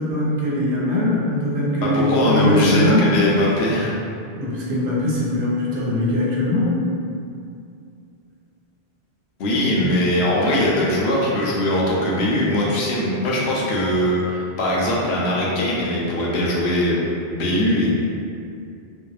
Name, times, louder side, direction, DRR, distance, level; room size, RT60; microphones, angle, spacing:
voice 1, 0.0-3.1 4.3-6.8, left 1 dB, 65° right, -6 dB, 0.7 m, -21 dB
voice 2, 1.8-3.9 9.4-17.0 17.3-17.9, left 1 dB, 90° left, -5 dB, 0.8 m, -20 dB
2.6 x 2.1 x 2.3 m, 2.4 s
omnidirectional pair, 1.0 m